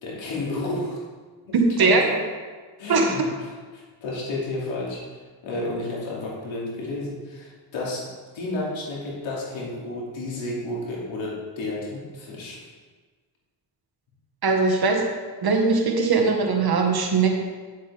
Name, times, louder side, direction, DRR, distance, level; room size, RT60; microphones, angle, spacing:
voice 1, 0.0-1.0 1.4-2.0 2.8-8.1 8.3-12.6, left 2 dB, 90° left, -4 dB, 2.7 m, -32 dB
voice 2, 14.4-15.1 15.4-17.4, right 4 dB, 55° right, 2 dB, 1.6 m, -20 dB
9.7 x 7.7 x 3.5 m, 1.4 s
cardioid pair, 95°, 45 cm